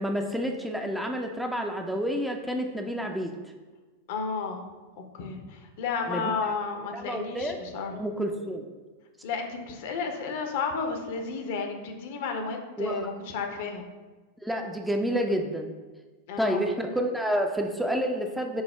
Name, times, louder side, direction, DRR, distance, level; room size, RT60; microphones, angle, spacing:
voice 1, 0.0-3.4 6.1-6.5 6.9-7.6 7.9-8.7 12.8-13.0 14.4-15.7 16.4-18.6, equal, 5° right, 3 dB, 0.4 m, -29 dB
voice 2, 4.1-4.6 5.1-8.0 9.2-13.8 16.3-16.7, left 5 dB, 50° left, 4 dB, 0.6 m, -32 dB
5.5 x 2.0 x 4.3 m, 1.3 s
figure-of-eight pair, 90°, 0 cm